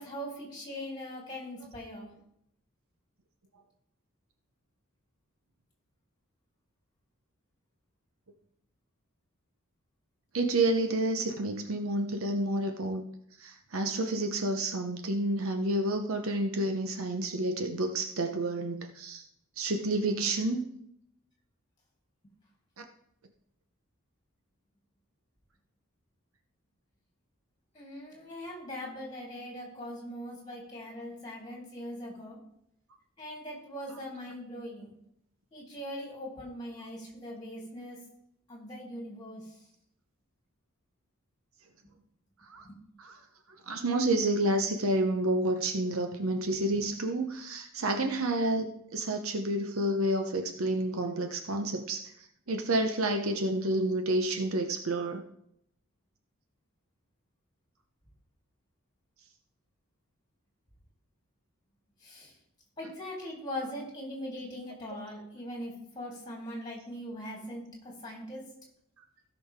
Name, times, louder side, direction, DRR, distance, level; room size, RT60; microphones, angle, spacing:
voice 1, 0.0-2.1 27.7-32.4 33.2-34.9 35.5-38.0 38.5-39.6 42.6-42.8 46.5-46.7 62.0-62.3 62.8-68.6, equal, 20° left, -2 dB, 3.5 m, -41 dB
voice 2, 10.3-13.0 13.4-19.3 19.6-20.7 22.8-22.9 42.5-42.6 43.0-43.2 43.7-52.1 52.5-55.2, right 1 dB, 75° right, 5 dB, 0.9 m, -29 dB
16.5 x 6.2 x 3.6 m, 0.73 s
head